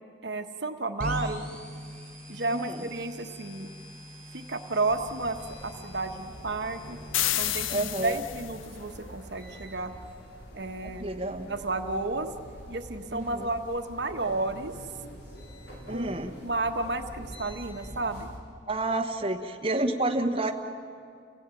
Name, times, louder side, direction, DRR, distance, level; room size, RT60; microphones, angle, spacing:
voice 1, 0.2-1.4 2.3-3.7 4.3-7.0 7.4-9.9 10.5-11.1 11.4-12.3 12.7-14.7 15.9-16.2 16.4-18.3, right 2 dB, 60° right, 6 dB, 1.3 m, -32 dB
sound 1, 1.0-8.6, equal, 5° left, 3.6 m, -42 dB
voice 2, 2.5-2.8 7.7-8.2 10.8-11.5 13.1-13.5 15.9-16.3 18.7-20.5, right 2 dB, 30° right, 1 dB, 1.2 m, -29 dB
sound 2, 4.9-18.4, equal, 55° left, 3.9 m, -46 dB
sound 3, 7.1-8.7, left 12 dB, 90° left, 0.6 m, -30 dB
29.0 x 17.0 x 9.1 m, 2.3 s
head